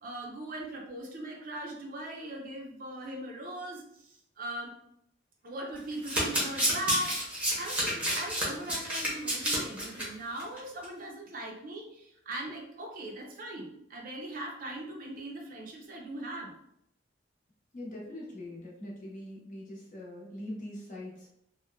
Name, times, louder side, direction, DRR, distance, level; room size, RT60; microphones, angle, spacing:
voice 1, 0.0-4.7 5.4-7.2 7.5-16.5, right 1 dB, 50° right, 0 dB, 0.5 m, -39 dB
Domestic sounds home sounds, 5.9-10.1 10.4-10.6 10.8-10.9, equal, 5° right, 0.7 m, -30 dB
voice 2, 17.7-21.3, left 1 dB, 45° left, -4 dB, 0.8 m, -42 dB
2.8 x 2.1 x 2.2 m, 0.76 s
head